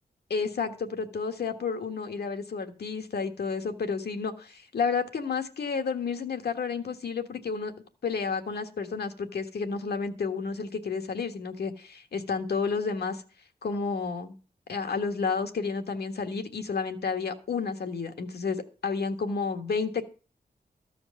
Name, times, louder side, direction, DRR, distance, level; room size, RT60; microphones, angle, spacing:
voice 1, 0.3-7.7 8.0-13.2 13.6-14.3 14.7-20.0, left 5 dB, 85° left, 6 dB, 1.5 m, -31 dB
14.0 x 5.1 x 8.3 m, 0.36 s
wide cardioid pair, 170°, 16 cm